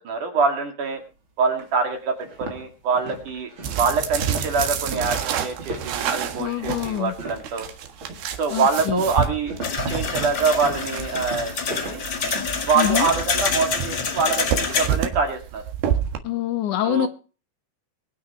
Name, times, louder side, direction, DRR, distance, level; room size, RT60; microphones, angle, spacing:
voice 1, 0.1-1.0 1.4-3.5 3.8-7.7 8.4-9.5 9.9-12.0 12.6-15.6 16.8-17.1, right 4 dB, 55° right, 3.6 m, -24 dB
sound 1, 1.0-1.1 1.6-1.7 2.1-7.6 8.0-8.4 9.0-13.4, right 2 dB, 35° right, 3.6 m, -37 dB
sound 2, 3.6-16.2, right 9 dB, 80° right, 3.5 m, -29 dB
voice 2, 6.4-7.1 8.5-9.0 12.8-13.1 16.2-17.1, left 12 dB, 75° left, 1.8 m, -25 dB
sound 3, 9.6-14.9, left 5 dB, 45° left, 1.7 m, -27 dB
23.0 x 9.4 x 3.0 m
omnidirectional pair, 4.4 m